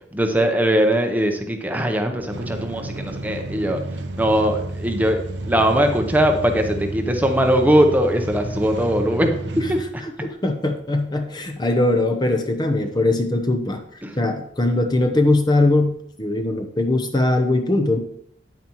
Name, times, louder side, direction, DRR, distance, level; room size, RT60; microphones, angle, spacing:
voice 1, 0.1-3.8 4.2-5.2 5.4-9.3 9.7-9.8 14.0-14.1, equal, 10° right, 4 dB, 0.8 m, -20 dB
sound 1, 2.3-9.8, right 1 dB, 80° right, 0.8 m, -31 dB
voice 2, 10.0-13.8 14.2-18.0, left 2 dB, 25° left, 6 dB, 0.8 m, -21 dB
9.2 x 9.0 x 3.0 m, 0.67 s
head